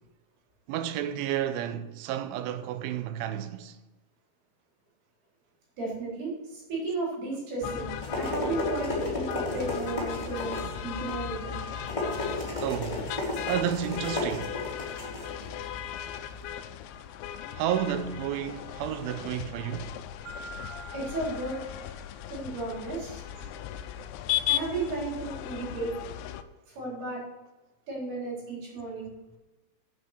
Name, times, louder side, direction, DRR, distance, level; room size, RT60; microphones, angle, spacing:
voice 1, 0.7-3.8 10.6-10.8 12.5-13.2 13.5-14.7 17.5-20.0, right 10 dB, 80° right, 3.0 m, -31 dB
voice 2, 5.8-11.6 20.9-21.6 22.3-23.2 24.5-25.9 26.7-27.2 27.9-29.1, right 3 dB, 50° right, 5.9 m, -34 dB
sound 1, 7.6-26.4, left 11 dB, 90° left, 2.5 m, -37 dB
sound 2, 7.8-16.5, left 2 dB, 10° left, 2.2 m, -34 dB
Marimba xylophone, 20.3-22.5, right 4 dB, 25° right, 4.6 m, -46 dB
8.9 x 8.7 x 6.8 m
omnidirectional pair, 5.8 m